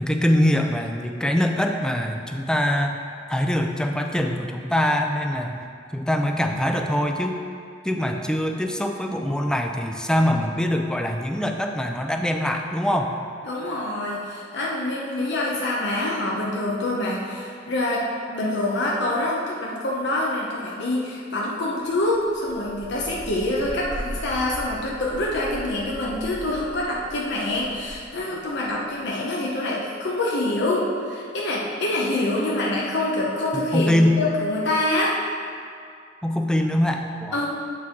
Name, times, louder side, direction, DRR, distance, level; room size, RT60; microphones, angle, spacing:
voice 1, 0.0-3.0 3.3-5.6 5.9-7.4 7.8-13.1 33.5-34.2 36.2-37.5, left 1 dB, 5° left, 3 dB, 0.4 m, -23 dB
voice 2, 13.4-35.2 37.3-37.5, left 1 dB, 65° left, -4 dB, 0.7 m, -26 dB
sound 1, 21.8-29.2, equal, 20° left, 0.8 m, -40 dB
8.4 x 4.6 x 3.6 m, 2.4 s
head